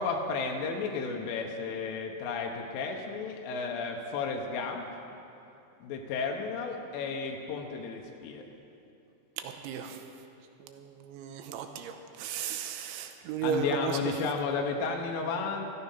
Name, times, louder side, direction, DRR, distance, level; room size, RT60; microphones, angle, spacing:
voice 1, 0.0-4.8 5.8-8.4 13.4-15.6, left 4 dB, 90° left, 1 dB, 3.6 m, -33 dB
voice 2, 9.4-10.0 10.6-14.0, right 7 dB, 90° right, 6 dB, 3.1 m, -35 dB
14.0 x 13.5 x 5.6 m, 2.8 s
omnidirectional pair, 5.5 m